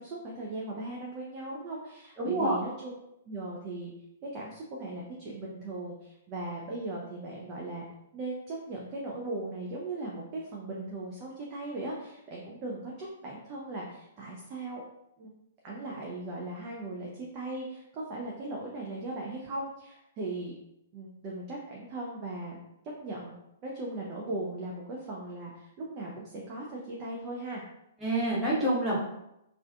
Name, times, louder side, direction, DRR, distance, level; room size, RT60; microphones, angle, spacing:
voice 1, 0.0-2.9 3.3-3.9 4.3-7.9 8.1-14.8 15.2-15.3 15.6-20.5 20.9-22.6 23.0-23.3 23.6-27.6, right 2 dB, 35° right, -3 dB, 0.4 m, -38 dB
voice 2, 2.2-2.5 28.0-29.0, right 1 dB, 10° right, -7 dB, 0.9 m, -27 dB
2.4 x 2.4 x 2.2 m, 0.84 s
figure-of-eight pair, 115°, 0 cm